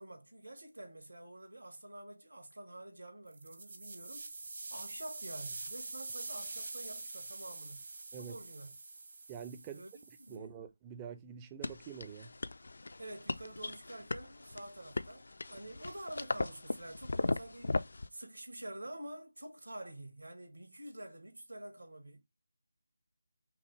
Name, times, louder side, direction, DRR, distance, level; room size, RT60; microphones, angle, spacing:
voice 1, 0.0-4.3 4.7-7.8 8.1-8.7 9.7-9.9 10.2-10.5 13.0-17.8 18.1-22.2, right 1 dB, 75° right, 1.4 m, -48 dB
sound 1, 3.3-10.4, right 3 dB, 50° right, 0.9 m, -45 dB
voice 2, 9.3-9.8 10.3-12.3, right 8 dB, 15° right, 0.4 m, -46 dB
sound 2, 11.6-18.1, left 3 dB, 60° left, 0.3 m, -38 dB
5.8 x 2.0 x 3.2 m
figure-of-eight pair, 160°, 0 cm